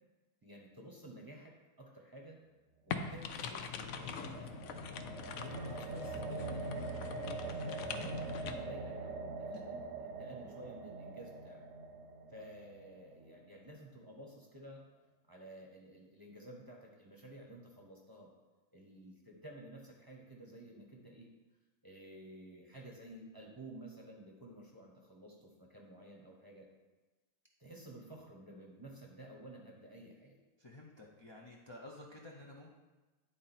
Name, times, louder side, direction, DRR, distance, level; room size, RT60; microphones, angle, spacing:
voice 1, 0.4-2.4 2.9-4.5 5.4-7.4 7.8-9.8 10.2-11.6 12.3-14.9 15.3-18.3 18.7-21.3 21.8-26.7 27.6-30.4, right 1 dB, 20° right, 0 dB, 0.8 m, -52 dB
sound 1, 2.9-8.5, left 6 dB, 75° left, 1.0 m, -43 dB
sound 2, 3.3-13.4, right 3 dB, 65° right, 0.9 m, -43 dB
voice 2, 30.6-32.8, left 1 dB, 45° left, -2 dB, 0.3 m, -52 dB
9.9 x 3.8 x 4.2 m, 1.2 s
omnidirectional pair, 1.5 m